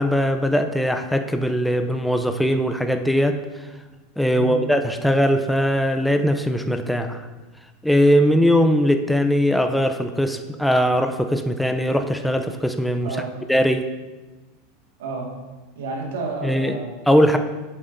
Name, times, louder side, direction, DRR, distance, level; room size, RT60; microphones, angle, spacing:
voice 1, 0.0-3.4 4.2-7.2 7.8-13.1 13.5-13.9 16.4-16.8 17.1-17.4, equal, ahead, 6 dB, 0.5 m, -20 dB
voice 2, 15.0-15.3 15.8-16.9, right 4 dB, 85° right, 0 dB, 1.7 m, -30 dB
7.8 x 7.7 x 2.6 m, 1.2 s
hypercardioid pair, 110°, 0 cm